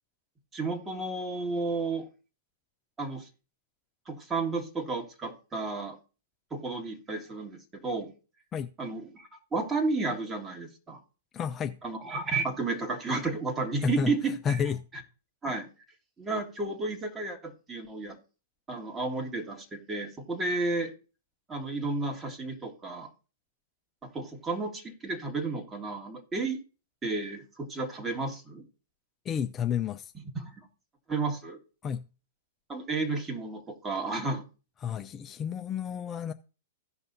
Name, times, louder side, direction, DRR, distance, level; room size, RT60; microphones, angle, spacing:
voice 1, 0.5-2.1 3.0-3.3 4.1-6.0 6.5-8.1 8.8-11.0 11.8-14.6 15.4-15.7 16.2-18.2 18.7-20.9 21.5-23.1 24.0-26.6 27.0-28.6 30.1-30.6 31.1-31.6 32.7-34.4, right 3 dB, 20° right, 1.9 m, -32 dB
voice 2, 11.3-11.8 13.8-14.1 14.4-14.8 29.3-30.1 31.8-32.0 34.8-36.3, left 7 dB, 25° left, 0.5 m, -30 dB
16.5 x 5.6 x 2.7 m
hypercardioid pair, 115°, 0 cm